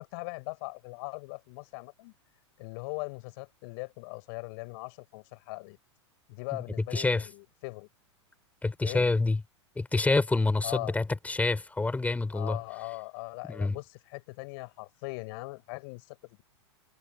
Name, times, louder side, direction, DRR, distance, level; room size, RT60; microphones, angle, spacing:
voice 1, 0.0-2.1 2.6-5.8 6.3-7.9 8.8-9.1 10.6-10.9 12.3-16.4, left 28 dB, 55° left, 7.1 m, -40 dB
voice 2, 6.9-7.3 8.6-9.4 9.8-12.6 13.5-13.8, left 3 dB, 10° left, 5.2 m, -27 dB
hypercardioid pair, 100°, 15 cm